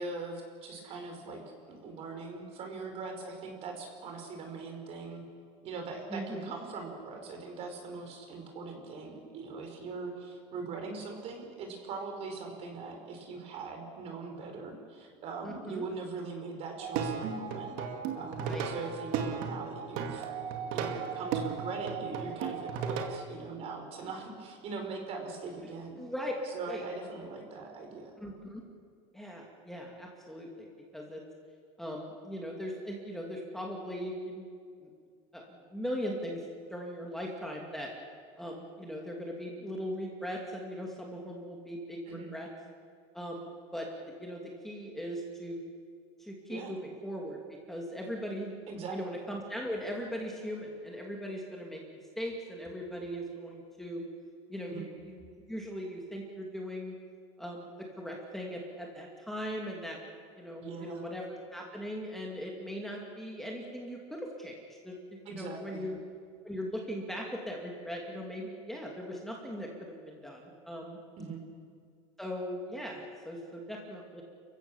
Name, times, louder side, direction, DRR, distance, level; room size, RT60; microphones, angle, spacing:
voice 1, 0.0-1.4 1.7-5.2 5.6-17.8 18.1-20.2 20.5-26.0 26.4-28.1 42.1-42.3 46.5-46.7 48.7-49.1 54.7-54.9 60.6-61.0 65.2-65.9 71.2-71.4, right 4 dB, 45° right, 4 dB, 4.7 m, -41 dB
voice 2, 6.1-6.5 15.4-15.8 18.2-18.7 26.0-26.3 26.7-26.8 28.2-28.6 29.1-31.2 31.8-34.5 34.8-34.9 35.3-36.4 36.7-37.9 38.4-42.5 43.1-45.6 46.2-47.4 47.7-48.5 48.9-54.0 54.5-56.9 57.4-57.7 58.0-60.0 60.4-64.6 64.8-66.0 66.4-71.0 72.2-74.2, equal, ahead, -1 dB, 2.5 m, -39 dB
Plucked string instrument, 16.8-23.2, right 7 dB, 60° right, 2.4 m, -35 dB
30.0 x 15.5 x 7.1 m, 2.1 s
cardioid pair, 150°, 15 cm